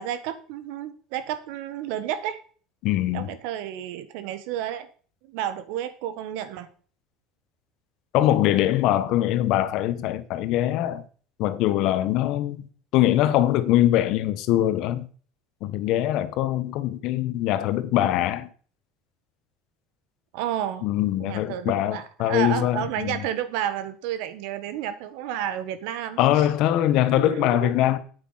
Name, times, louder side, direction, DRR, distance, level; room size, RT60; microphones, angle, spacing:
voice 1, 0.0-2.4 3.1-4.9 5.3-6.7 20.3-20.9 21.2-26.2 27.2-27.7, right 10 dB, 75° right, 1.6 m, -31 dB
voice 2, 2.8-3.3 8.1-11.0 11.4-12.7 12.9-15.1 15.6-18.5 20.8-23.2 26.2-28.0, left 13 dB, 65° left, 1.4 m, -22 dB
8.8 x 8.4 x 5.8 m
supercardioid pair, 95°, 0 cm